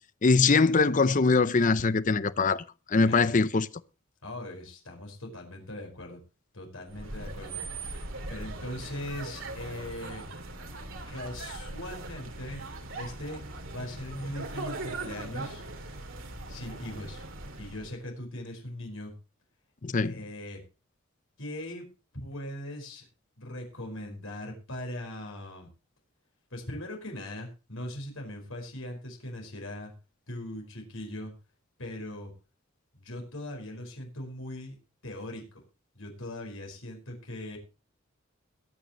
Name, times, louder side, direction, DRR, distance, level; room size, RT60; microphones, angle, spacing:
voice 1, 0.2-2.6 2.9-3.7 19.8-20.1, left 4 dB, 40° left, 0.6 m, -22 dB
voice 2, 4.2-6.2 6.5-7.6 7.9-10.2 11.1-12.6 13.0-15.7 16.5-17.2 17.6-19.1 20.0-20.6 21.4-21.9 22.1-23.1 23.4-25.7 26.5-29.9 30.3-31.3 31.8-32.3 32.9-34.8 35.0-35.6 35.9-37.6, left 1 dB, 80° left, 5.1 m, -40 dB
sound 1, 6.9-18.0, right 2 dB, 70° right, 2.6 m, -40 dB
22.0 x 9.0 x 3.1 m
head